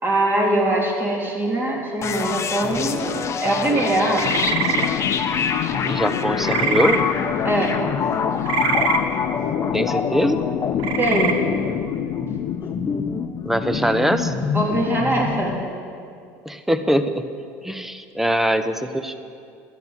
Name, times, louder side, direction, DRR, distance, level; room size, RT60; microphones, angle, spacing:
voice 1, 0.0-3.1 3.4-4.3 7.4-7.8 11.0-11.4 14.5-15.6, right 1 dB, 25° right, -2 dB, 3.7 m, -22 dB
sound 1, 2.0-15.6, left 6 dB, 35° left, 1.0 m, -26 dB
sound 2, 4.1-4.9 6.4-7.0 8.5-9.0 10.8-11.3, right 6 dB, 70° right, 1.1 m, -23 dB
sound 3, 4.2-12.6, left 13 dB, 65° left, 0.5 m, -28 dB
voice 2, 5.8-7.1 9.7-10.4 13.4-14.3 16.4-17.3 17.6-19.2, equal, 5° right, 10 dB, 0.9 m, -22 dB
13.5 x 9.4 x 7.5 m, 2.4 s
supercardioid pair, 90°, 8 cm